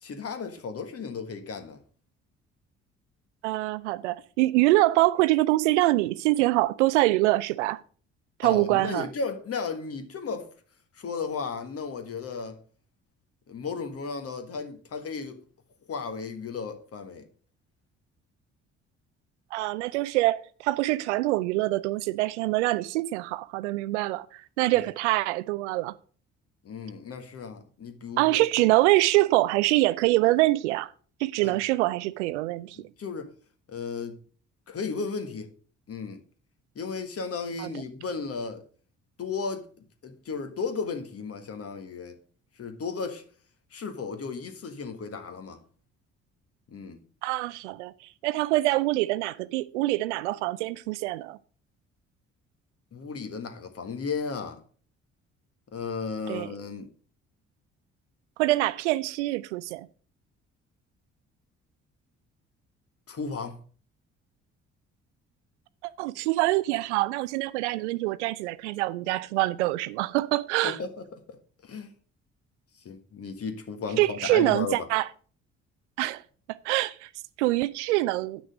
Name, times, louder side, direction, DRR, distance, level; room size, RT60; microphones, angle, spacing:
voice 1, 0.0-1.8 8.4-10.5 10.9-12.6 13.5-15.4 15.9-17.3 24.7-24.9 26.6-28.4 31.4-31.6 33.0-33.3 33.7-34.2 34.7-35.5 35.9-36.2 36.7-38.6 39.2-39.7 40.0-42.2 42.6-43.2 43.7-45.6 46.7-47.0 52.9-54.6 55.7-56.9 63.1-63.6 70.6-71.9 72.8-74.9, left 5 dB, 40° left, 1.6 m, -34 dB
voice 2, 3.4-7.8 8.4-9.1 19.5-24.3 24.6-25.9 28.2-30.9 31.2-32.8 37.6-37.7 47.2-47.9 48.2-51.4 56.3-56.5 58.4-59.9 65.8-70.8 74.0-75.0 76.0-76.2 76.6-77.1 77.4-78.4, right 18 dB, 70° right, 0.5 m, -25 dB
9.2 x 6.1 x 5.2 m
figure-of-eight pair, 45°, 36 cm